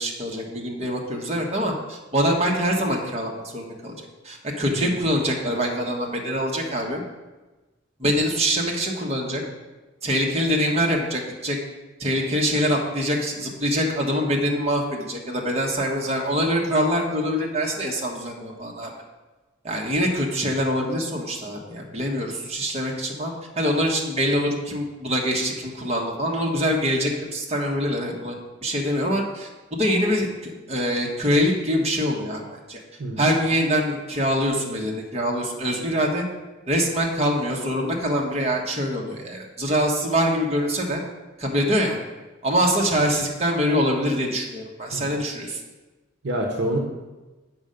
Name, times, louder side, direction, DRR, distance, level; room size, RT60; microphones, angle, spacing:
voice 1, 0.0-3.9 4.2-7.0 8.0-9.4 10.0-11.6 12.0-18.9 19.6-28.3 28.6-32.4 32.7-32.8 33.2-36.2 36.7-41.0 41.4-42.0 42.4-45.6, equal, 35° right, -1 dB, 1.3 m, -24 dB
voice 2, 46.2-46.8, right 1 dB, 60° right, 2 dB, 1.0 m, -27 dB
8.2 x 5.6 x 5.2 m, 1.2 s
head